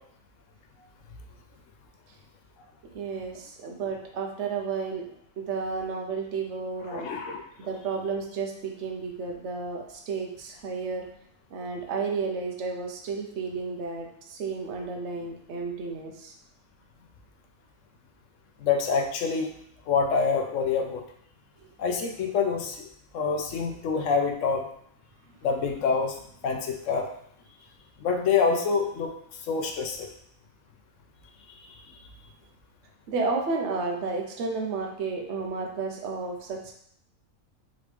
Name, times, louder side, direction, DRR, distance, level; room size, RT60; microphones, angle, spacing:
voice 1, 2.9-5.1 5.4-7.1 7.6-11.0 11.5-16.3 21.6-21.7 33.1-36.7, right 4 dB, 60° right, 1 dB, 1.0 m, -32 dB
voice 2, 6.9-7.4 18.6-19.5 19.9-21.0 21.8-22.8 23.1-24.6 25.4-26.2 26.4-27.1 28.0-29.1 29.5-30.1, left 5 dB, 65° left, 3 dB, 0.9 m, -26 dB
5.1 x 3.1 x 3.3 m, 0.69 s
omnidirectional pair, 1.5 m